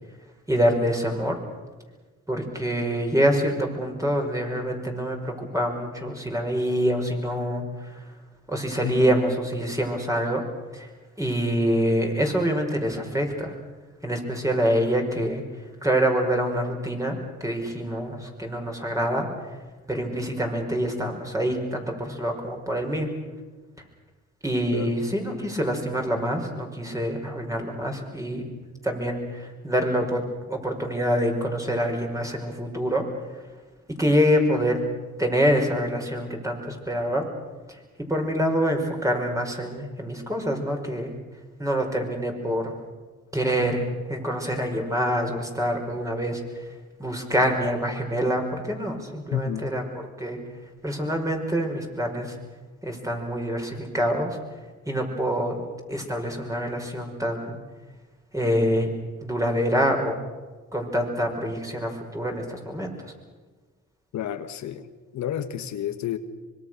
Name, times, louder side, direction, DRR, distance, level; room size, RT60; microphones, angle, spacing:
voice 1, 0.5-1.4 2.3-8.1 8.5-10.4 10.7-10.9 11.2-13.6 14.0-15.4 15.8-19.3 19.9-23.1 24.4-28.4 28.8-33.1 33.3-33.4 34.0-34.8 35.2-37.2 37.7-37.8 38.1-41.1 41.6-42.7 43.3-46.4 47.0-49.8 50.2-50.4 50.8-52.4 52.8-54.4 54.9-55.6 55.9-57.6 58.3-58.9 59.2-60.1 60.7-63.1, equal, 10° right, 2 dB, 5.4 m, -26 dB
voice 2, 8.8-9.2 24.7-24.9 49.3-49.7 64.1-64.9 65.1-66.2, left 10 dB, 70° left, 9 dB, 1.4 m, -30 dB
25.0 x 23.0 x 6.5 m, 1.3 s
cardioid pair, 90°, 30 cm